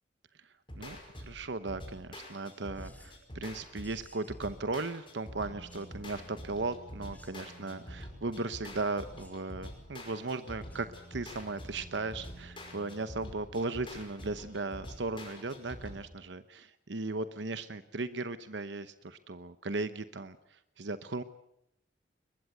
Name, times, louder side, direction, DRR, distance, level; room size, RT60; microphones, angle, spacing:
sound 1, 0.7-16.0, equal, 25° left, 5.4 m, -47 dB
voice 1, 0.8-21.2, right 3 dB, 70° right, 12 dB, 0.9 m, -37 dB
sound 2, 2.3-3.3 3.8-4.4 5.7-6.0 7.1-7.7 9.1-9.5 10.5-10.9 12.3-12.7, left 2 dB, 10° left, 3.1 m, -62 dB
22.5 x 21.0 x 7.9 m, 0.78 s
head